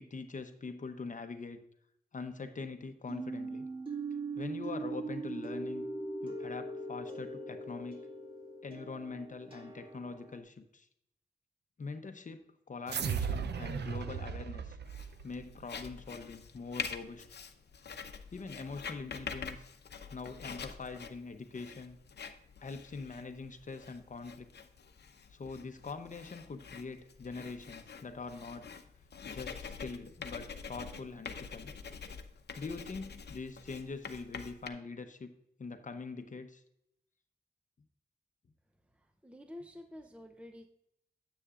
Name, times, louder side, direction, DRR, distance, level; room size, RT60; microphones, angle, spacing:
voice 1, 0.0-1.6 2.1-3.7 4.4-5.8 6.2-8.0 8.6-10.9 11.8-14.8 15.2-17.3 18.3-19.7 20.1-22.0 22.6-24.5 25.3-28.7 29.2-31.7 32.6-35.3 35.6-36.6, left 4 dB, 50° left, 7 dB, 0.8 m, -43 dB
sound 1, 3.1-10.4, right 2 dB, 30° right, 2.0 m, -40 dB
sound 2, 12.9-15.6, right 7 dB, 90° right, 0.6 m, -36 dB
Writing, 14.9-34.7, left 6 dB, 80° left, 0.7 m, -46 dB
voice 2, 38.9-40.7, left 1 dB, 5° right, 6 dB, 0.6 m, -49 dB
9.7 x 8.6 x 2.5 m, 0.77 s
wide cardioid pair, 95°, 17 cm